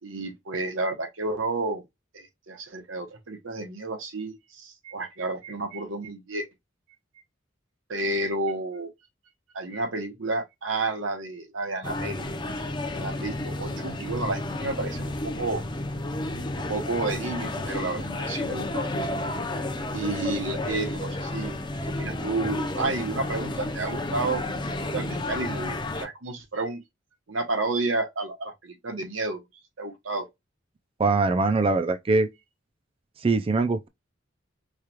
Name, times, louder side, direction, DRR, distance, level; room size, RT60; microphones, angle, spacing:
voice 1, 0.0-1.8 2.1-6.5 7.9-8.9 9.5-12.3 12.5-15.6 16.5-19.1 19.9-21.5 22.0-26.8 27.3-29.4 29.8-30.3, right 2 dB, 90° right, 1.2 m, -31 dB
sound 1, 11.8-26.1, left 2 dB, 25° left, 0.6 m, -31 dB
voice 2, 31.0-32.3 33.2-33.9, right 3 dB, 30° right, 0.4 m, -22 dB
4.8 x 2.3 x 2.9 m
head